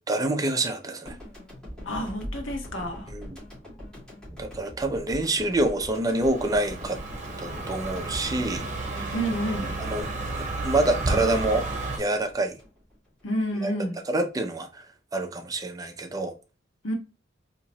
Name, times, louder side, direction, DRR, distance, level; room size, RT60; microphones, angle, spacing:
voice 1, 0.1-1.1 3.1-3.4 4.4-7.0 7.4-8.6 9.0-9.1 9.8-10.1 10.6-11.7 12.0-12.6 13.6-14.8 15.1-16.3, right 2 dB, 20° right, 0.4 m, -27 dB
sound 1, 1.1-13.3, equal, 5° left, 1.9 m, -42 dB
voice 2, 1.8-3.1 9.1-9.8 13.2-14.0 16.8-16.9, equal, 90° left, 1.1 m, -29 dB
Car passing by, 5.9-12.0, right 2 dB, 40° right, 0.9 m, -32 dB
4.1 x 2.8 x 2.7 m
head